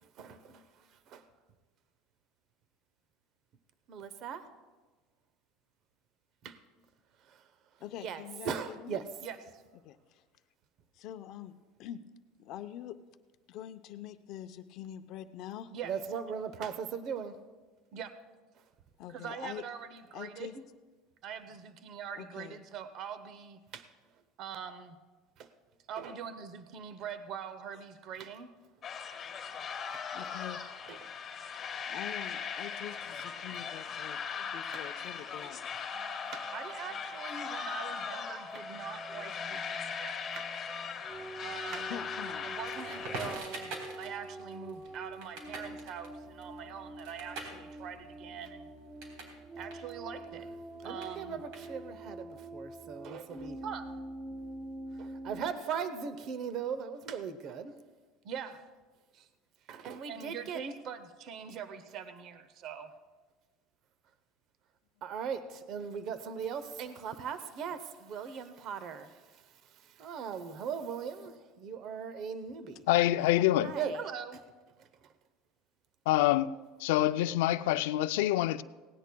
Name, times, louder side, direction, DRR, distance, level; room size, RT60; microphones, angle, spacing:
voice 1, 3.9-4.4 6.4-6.5 8.0-9.4 15.7-17.3 17.9-18.1 19.1-20.5 21.2-23.8 24.4-25.0 25.9-28.5 30.9-31.0 36.3-40.4 41.4-41.9 42.4-46.1 46.4-48.6 49.6-50.5 50.8-52.3 52.5-53.8 55.0-57.7 58.3-58.6 59.7-62.9 65.0-69.1 70.0-72.8 73.6-74.4, right 7 dB, 40° right, 0.7 m, -40 dB
voice 2, 7.8-9.0 9.8-10.2 10.9-12.0 12.4-13.0 13.5-15.7 19.0-19.6 20.1-20.6 22.2-22.6 30.1-30.6 31.9-35.6 39.1-39.5 41.8-42.5 43.2-43.3 73.2-73.4, left 11 dB, 45° left, 0.6 m, -45 dB
sound 1, 28.8-43.3, left 6 dB, 20° left, 1.8 m, -39 dB
sound 2, 35.9-55.5, right 1 dB, 10° right, 0.6 m, -46 dB
Crackle, 42.6-49.4 49.6-52.1, right 2 dB, 65° right, 3.6 m, -45 dB
voice 3, 72.9-73.7 76.1-76.5 76.8-78.6, left 14 dB, 90° left, 0.4 m, -26 dB
18.5 x 17.5 x 2.3 m
cardioid pair, 165°, 0 cm